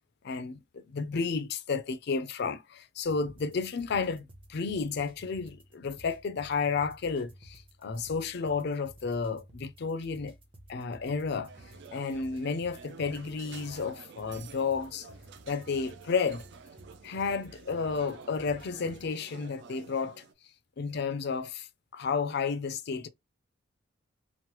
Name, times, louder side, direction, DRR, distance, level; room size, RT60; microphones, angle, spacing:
voice 1, 0.2-10.3 10.7-11.5 11.9-15.1 15.5-16.4 17.0-20.2 20.8-21.7 21.9-23.1, left 5 dB, 55° left, 0.4 m, -32 dB
sound 1, 3.0-19.1, right 1 dB, 25° right, 0.7 m, -54 dB
sound 2, 11.5-20.3, right 5 dB, 55° right, 0.4 m, -50 dB
3.0 x 2.0 x 2.9 m
head